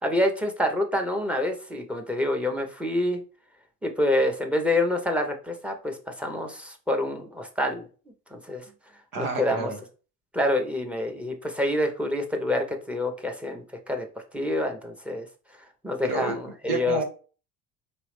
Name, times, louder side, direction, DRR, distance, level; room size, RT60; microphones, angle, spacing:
voice 1, 0.0-3.2 3.8-7.9 8.3-8.6 9.2-9.7 10.3-14.1 14.3-15.3 15.8-17.0, left 1 dB, 5° right, 4 dB, 1.0 m, -27 dB
voice 2, 9.1-9.8 16.0-16.4 16.7-17.0, right 3 dB, 75° right, 4 dB, 1.4 m, -29 dB
5.1 x 3.0 x 3.2 m, 0.36 s
hypercardioid pair, 70°, 46 cm